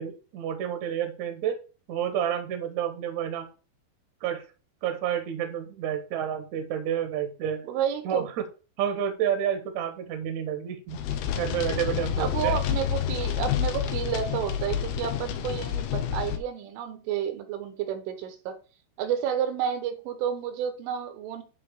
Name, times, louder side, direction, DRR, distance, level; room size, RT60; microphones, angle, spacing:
voice 1, 0.0-1.6 1.9-3.5 4.2-4.5 4.8-7.6 8.0-8.4 8.8-11.0 11.4-12.5, right 9 dB, 60° right, 2.0 m, -29 dB
voice 2, 7.7-8.3 12.2-18.6 19.0-21.4, right 9 dB, 80° right, 3.5 m, -30 dB
sound 1, 10.9-16.4, left 10 dB, 80° left, 2.3 m, -29 dB
11.0 x 3.8 x 6.6 m
omnidirectional pair, 5.7 m